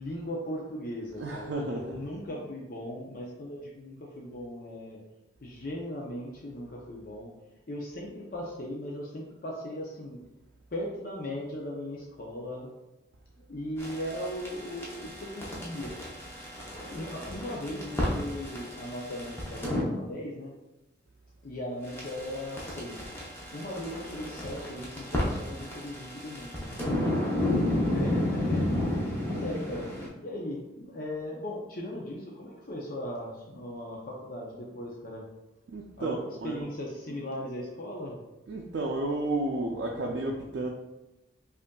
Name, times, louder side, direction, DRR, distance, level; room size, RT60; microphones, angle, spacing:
voice 1, 0.0-5.0 5.4-7.3 7.7-10.2 10.7-12.7 13.4-16.0 16.8-20.5 21.4-23.1 23.5-26.9 27.4-28.6 29.3-29.9 30.2-35.2 36.0-38.2, left 1 dB, 50° left, -3 dB, 0.5 m, -38 dB
voice 2, 1.2-2.0 26.7-27.5 35.7-36.7 38.5-40.7, right 2 dB, 75° right, -1 dB, 0.4 m, -33 dB
sound 1, 13.8-19.8 21.9-30.1, left 1 dB, 15° left, 0.7 m, -32 dB
5.1 x 2.5 x 2.2 m, 0.96 s
head